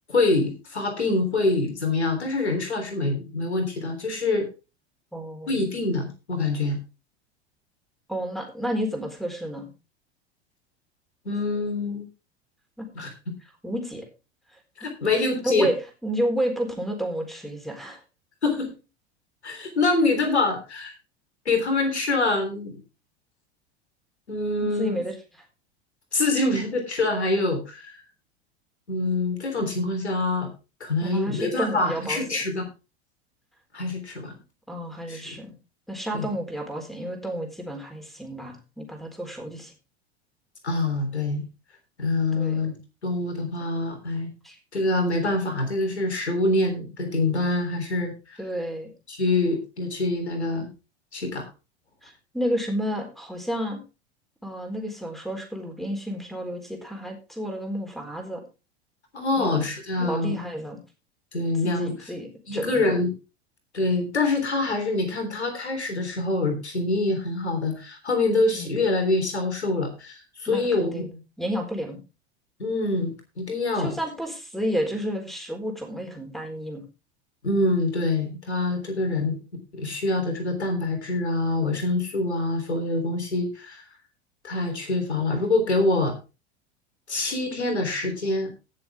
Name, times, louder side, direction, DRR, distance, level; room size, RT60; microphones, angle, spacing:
voice 1, 0.1-4.5 5.5-6.8 11.3-12.0 13.0-13.1 14.8-15.7 18.4-18.7 19.4-20.9 21.5-22.8 24.3-25.1 26.1-28.0 28.9-30.5 30.8-32.7 33.7-34.3 35.1-35.4 36.1-36.3 40.6-41.4 42.0-42.7 43.0-44.3 44.7-48.4 49.1-50.7 51.1-51.5 59.1-60.4 61.3-62.1 62.5-63.1 63.7-71.0 72.6-74.0 77.4-79.4 79.7-83.8 84.4-86.1 87.1-88.5, left 2 dB, 80° left, 5 dB, 3.6 m, -25 dB
voice 2, 5.1-5.5 8.1-9.6 12.8-12.9 13.6-14.1 15.4-15.8 16.0-18.0 24.6-25.2 31.0-32.4 34.7-35.6 35.9-39.7 42.3-42.6 44.4-44.6 48.4-48.9 52.0-53.8 54.4-58.4 59.4-59.6 60.0-60.8 61.6-63.0 68.5-68.7 70.5-72.0 73.7-76.8, equal, ahead, 4 dB, 4.1 m, -31 dB
18.0 x 7.1 x 3.5 m, 0.30 s
figure-of-eight pair, 85°, 33 cm